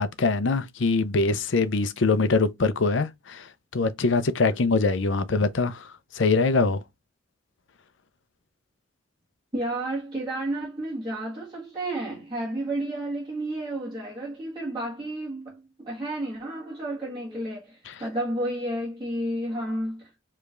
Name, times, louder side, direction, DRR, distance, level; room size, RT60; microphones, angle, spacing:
voice 1, 0.0-3.5 3.7-5.9 6.1-6.8, left 3 dB, 65° left, 0.6 m, -23 dB
voice 2, 9.5-20.1, right 1 dB, 20° right, 1.7 m, -31 dB
5.0 x 3.3 x 2.5 m
head